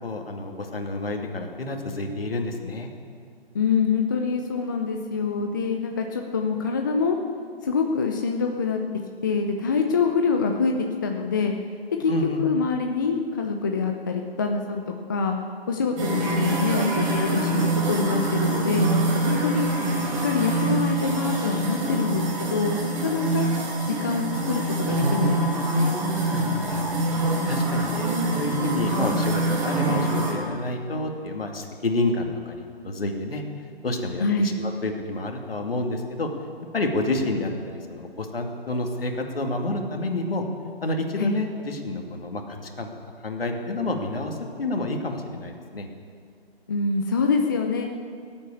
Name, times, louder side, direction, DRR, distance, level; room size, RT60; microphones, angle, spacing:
voice 1, 0.0-2.9 12.1-12.4 26.7-33.4 33.8-36.3 36.7-40.5 40.8-42.9 43.2-45.9, left 2 dB, 65° left, 3 dB, 2.4 m, -29 dB
voice 2, 3.5-7.2 7.6-8.8 9.2-11.5 12.0-12.1 12.4-14.8 15.1-15.4 15.7-18.9 19.1-19.7 20.2-23.5 23.9-25.9 34.2-34.5 41.2-41.3 46.7-47.8, left 5 dB, 20° left, 3 dB, 0.6 m, -25 dB
sound 1, 16.0-30.3, right 2 dB, 30° right, 4.3 m, -25 dB
17.5 x 8.6 x 8.4 m, 2.2 s
figure-of-eight pair, 150°, 31 cm